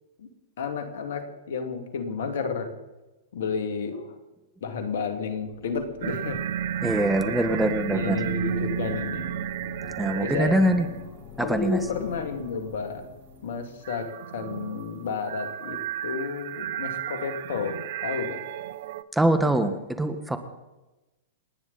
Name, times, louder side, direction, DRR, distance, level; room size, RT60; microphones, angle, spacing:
voice 1, 0.6-2.7 3.3-4.2 4.6-6.4 7.9-9.3 10.2-10.6 11.4-13.1 13.4-18.6, left 5 dB, 70° left, 6 dB, 2.5 m, -31 dB
sound 1, 5.3-14.1, left 5 dB, 40° left, 1.9 m, -44 dB
sound 2, 6.0-11.1 11.4-12.4 13.8-19.0, right 10 dB, 60° right, 0.7 m, -33 dB
voice 2, 6.8-8.2 10.0-10.8 11.4-11.8 19.1-20.4, right 1 dB, 5° right, 8 dB, 1.5 m, -23 dB
29.0 x 9.8 x 4.2 m, 1.1 s
hypercardioid pair, 115°, 0 cm